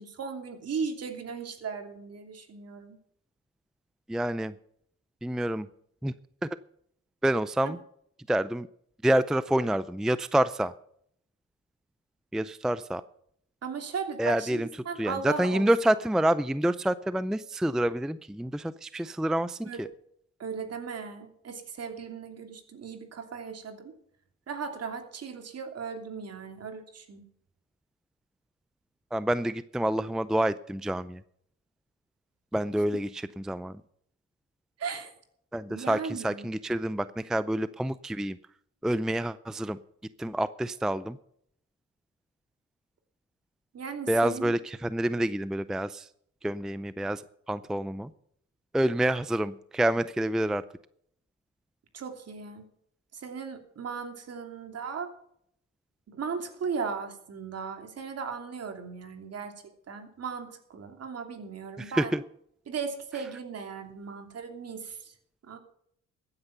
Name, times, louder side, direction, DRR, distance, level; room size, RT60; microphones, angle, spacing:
voice 1, 0.0-3.0 7.6-7.8 13.6-15.7 19.6-19.8 20.4-23.9 24.5-27.2 34.8-35.1 35.7-36.5 43.7-44.5 51.9-52.6 53.1-55.1 56.1-59.5 59.9-62.1 62.7-65.1 65.5-65.6, right 5 dB, 55° right, 6 dB, 2.9 m, -37 dB
voice 2, 4.1-4.5 5.2-5.7 6.0-6.1 6.4-6.5 7.2-7.8 8.3-8.7 9.0-10.7 12.3-13.0 14.2-14.7 15.0-19.9 29.1-31.2 32.5-33.8 35.5-38.4 38.8-39.8 40.2-41.2 44.1-46.1 46.4-47.2 47.5-48.1 48.7-50.6 61.8-62.2, right 1 dB, ahead, 15 dB, 0.5 m, -27 dB
15.0 x 9.8 x 5.6 m, 0.69 s
cardioid pair, 90°, 30 cm